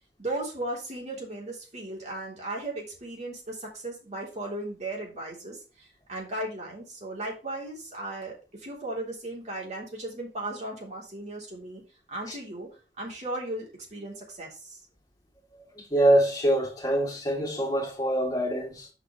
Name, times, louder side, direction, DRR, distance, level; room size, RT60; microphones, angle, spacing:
voice 1, 0.2-11.8 12.1-12.7 13.0-14.8, right 1 dB, 40° right, 3.5 m, -36 dB
voice 2, 15.8-18.9, right 1 dB, 20° left, 2.6 m, -25 dB
6.2 x 5.3 x 5.6 m
head